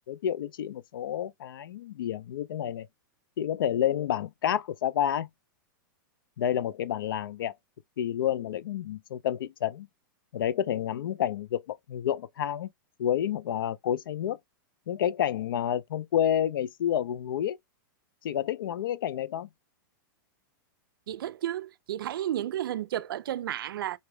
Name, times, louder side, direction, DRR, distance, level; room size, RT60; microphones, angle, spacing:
voice 1, 0.1-2.9 3.4-5.3 6.4-7.5 8.0-9.9 10.3-12.7 13.0-14.4 14.9-17.6 18.2-19.5, left 10 dB, 80° left, 0.5 m, -29 dB
voice 2, 21.1-24.0, right 12 dB, 85° right, 0.4 m, -32 dB
4.1 x 2.2 x 3.0 m
supercardioid pair, 150°, 11 cm